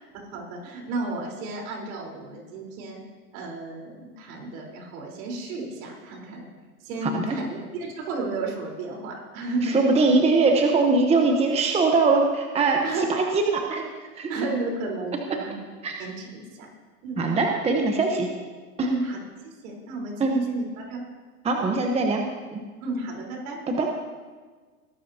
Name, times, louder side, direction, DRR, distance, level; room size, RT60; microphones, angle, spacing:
voice 1, 0.3-3.0 3.3-6.5 6.8-9.7 12.8-13.0 14.3-15.6 16.0-16.7 17.0-17.2 18.9-19.2 19.6-21.0 22.8-23.6, right 3 dB, 65° right, -1 dB, 4.2 m, -32 dB
voice 2, 7.0-7.4 9.6-13.9 14.2-14.3 15.8-16.0 17.2-18.3 18.8-18.9 20.2-20.3 21.4-22.2 22.5-22.6 23.7-23.9, right 3 dB, 15° right, 2 dB, 1.0 m, -22 dB
20.5 x 12.0 x 2.8 m, 1.4 s
supercardioid pair, 125°, 46 cm